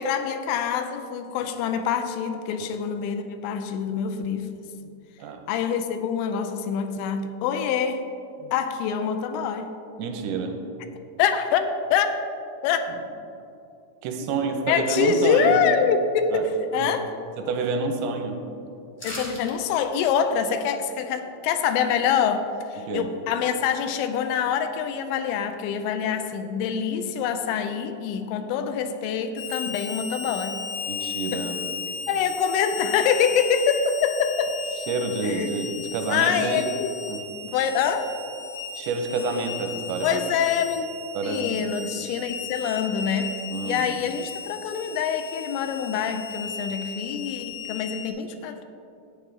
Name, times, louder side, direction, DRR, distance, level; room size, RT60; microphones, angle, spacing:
voice 1, 0.0-4.5 5.5-8.0 8.4-9.7 11.2-12.1 12.6-12.9 14.7-17.1 19.0-30.7 31.3-31.4 32.1-34.6 35.2-35.5 36.1-36.9 37.4-38.1 40.0-40.9 41.2-43.4 43.6-48.7, left 7 dB, 85° left, 8 dB, 2.8 m, -25 dB
voice 2, 10.0-10.6 12.9-13.0 14.0-15.6 16.3-16.5 16.8-16.9 17.4-18.4 22.8-23.1 30.9-31.6 34.9-36.6 37.1-37.2 38.8-40.3 41.1-41.7 43.5-44.0, right 4 dB, 85° right, 4 dB, 2.8 m, -28 dB
sound 1, 19.0-19.6 19.9-20.0, left 1 dB, 40° left, 0.8 m, -36 dB
Harmonica, 29.4-48.1, left 5 dB, 65° left, 3.0 m, -36 dB
11.5 x 8.4 x 3.6 m, 2.7 s
omnidirectional pair, 5.2 m